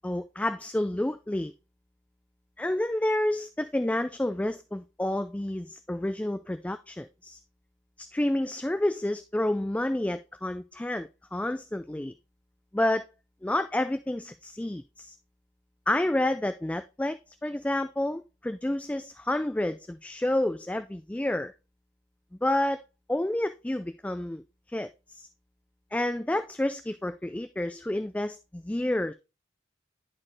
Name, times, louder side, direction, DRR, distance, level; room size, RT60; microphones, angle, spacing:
voice 1, 0.0-1.5 2.6-7.4 8.0-12.1 12.7-13.1 13.4-15.2 15.9-21.5 22.4-22.8 23.1-24.4 24.7-25.3 25.9-29.1, left 1 dB, 5° left, 0.3 m, -29 dB
11.0 x 4.3 x 3.2 m
head